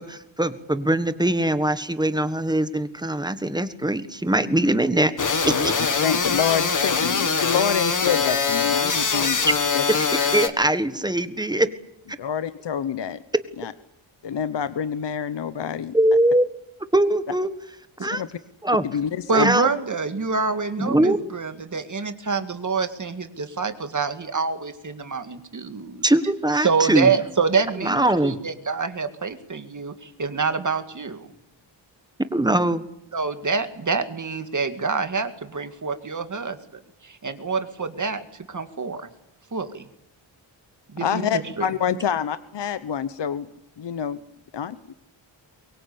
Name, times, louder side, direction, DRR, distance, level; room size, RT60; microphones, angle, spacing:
voice 1, 0.0-5.1 5.5-5.7 9.9-11.7 15.9-16.4 16.9-17.5 18.0-18.2 18.6-18.8 19.3-19.7 20.8-21.2 26.0-27.1 27.8-28.4 32.3-32.8, right 1 dB, 10° right, 11 dB, 1.5 m, -21 dB
sound 1, 5.2-10.5, left 5 dB, 40° left, 1.9 m, -23 dB
voice 2, 5.8-9.4 9.7-9.8 12.2-13.2 13.6-13.7 14.2-15.9 18.0-18.4 18.8-19.5 41.0-43.5 43.8-44.2 44.5-44.9, left 8 dB, 60° left, 13 dB, 1.0 m, -27 dB
voice 3, 19.3-26.1 26.6-31.3 33.1-36.6 37.0-38.2 38.5-39.1 39.5-39.8 40.9-41.7, right 5 dB, 40° right, 9 dB, 2.1 m, -26 dB
23.5 x 22.5 x 8.6 m, 0.82 s
wide cardioid pair, 150°, 47 cm